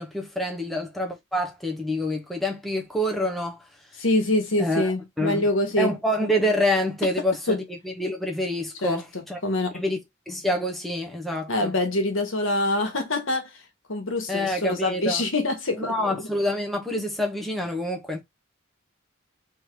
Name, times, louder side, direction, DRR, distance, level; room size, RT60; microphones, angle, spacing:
voice 1, 0.0-3.6 4.6-4.9 5.2-5.4 5.8-9.4 9.7-10.0 10.3-11.7 14.3-15.2 15.8-18.2, left 1 dB, ahead, 0.9 m, -27 dB
voice 2, 4.0-5.9 7.5-7.6 8.8-9.8 11.5-13.5 13.9-16.2, left 1 dB, 70° left, 1.5 m, -25 dB
3.7 x 3.0 x 4.6 m
head